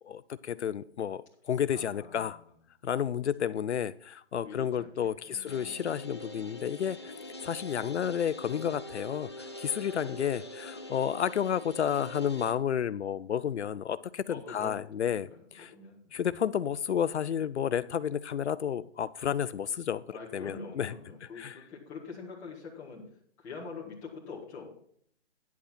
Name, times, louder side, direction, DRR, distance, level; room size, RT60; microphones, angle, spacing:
voice 1, 0.1-2.4 2.8-7.1 7.4-15.7 16.1-20.9 21.2-21.6, left 8 dB, 75° left, 15 dB, 0.6 m, -31 dB
voice 2, 1.7-2.4 4.4-5.9 14.3-14.8 15.0-16.1 20.1-23.0 23.4-24.7, left 4 dB, 10° left, -5 dB, 1.5 m, -45 dB
sound 1, 5.5-12.5, left 1 dB, 25° left, 0.5 m, -43 dB
10.0 x 8.4 x 4.3 m, 0.62 s
hypercardioid pair, 170°, 34 cm